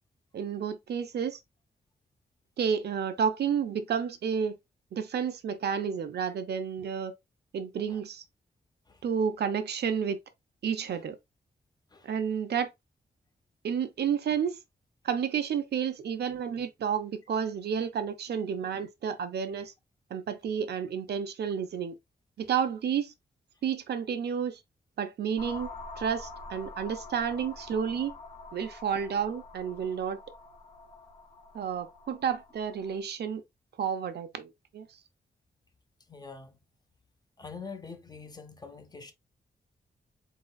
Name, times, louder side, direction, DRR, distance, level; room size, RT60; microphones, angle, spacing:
voice 1, 0.3-1.4 2.6-4.6 4.9-7.1 7.5-8.2 9.0-10.2 10.6-11.2 12.0-12.7 13.6-14.6 15.0-19.7 20.1-22.0 22.4-23.1 23.6-24.6 25.0-25.7 26.0-28.1 28.5-30.2 31.5-33.4 33.8-34.9, right 7 dB, 75° right, 0.6 m, -31 dB
sound 1, 25.4-33.0, left 3 dB, 50° left, 1.5 m, -46 dB
voice 2, 36.1-36.6 37.4-39.1, left 4 dB, 25° left, 0.6 m, -45 dB
4.0 x 3.8 x 2.3 m
wide cardioid pair, 150°, 17 cm